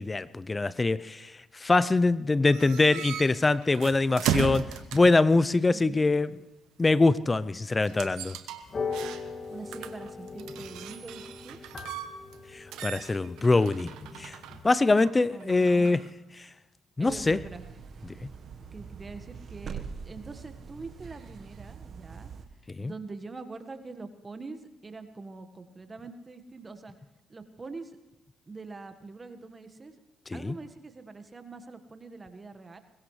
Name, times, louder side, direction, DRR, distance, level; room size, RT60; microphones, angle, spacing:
voice 1, 0.0-6.4 6.8-8.4 12.5-13.9 14.2-14.4 14.6-16.0 17.0-17.4 18.0-18.2 22.7-22.9 30.3-30.6, left 3 dB, 25° left, 18 dB, 0.6 m, -24 dB
sound 1, 2.5-5.2 7.8-9.5 9.7-12.4 12.7-16.1, right 9 dB, 75° right, 1.1 m, -36 dB
voice 2, 5.7-6.1 9.5-11.6 15.3-16.0 17.0-17.6 18.7-22.3 22.8-26.9 27.3-28.0 28.4-30.0 30.3-32.8, right 3 dB, 30° right, 9 dB, 1.5 m, -44 dB
sound 2, 8.6-14.6, left 4 dB, 40° left, 2.1 m, -39 dB
sound 3, 17.1-22.5, right 6 dB, 55° right, 1.3 m, -43 dB
21.5 x 20.5 x 3.3 m, 1.1 s
hypercardioid pair, 50°, 0 cm